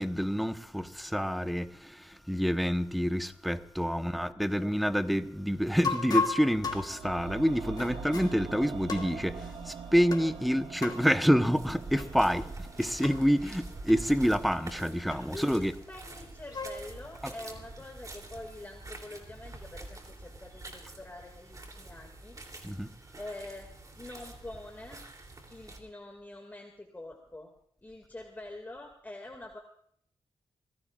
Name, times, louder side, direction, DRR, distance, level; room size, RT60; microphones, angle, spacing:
voice 1, 0.0-15.7 17.2-17.3 22.6-22.9, equal, ahead, 1.1 m, -28 dB
voice 2, 3.9-4.8 15.3-22.4 23.2-23.7 24.0-25.0 25.5-27.5 27.8-29.6, left 2 dB, 20° left, 2.2 m, -46 dB
sound 1, 5.8-8.4 8.9-9.6 10.1-10.4 10.8-11.1 12.0-12.1 12.4-12.5 13.0-13.3 13.9-14.0 14.5-14.6 15.1-15.5 16.2-16.9, left 5 dB, 45° left, 2.4 m, -35 dB
sound 2, 6.5-16.6 16.9-17.0, right 6 dB, 70° right, 1.3 m, -45 dB
sound 3, 11.5-25.8, right 2 dB, 40° right, 3.1 m, -46 dB
26.0 x 17.0 x 2.5 m
cardioid pair, 90°, 9 cm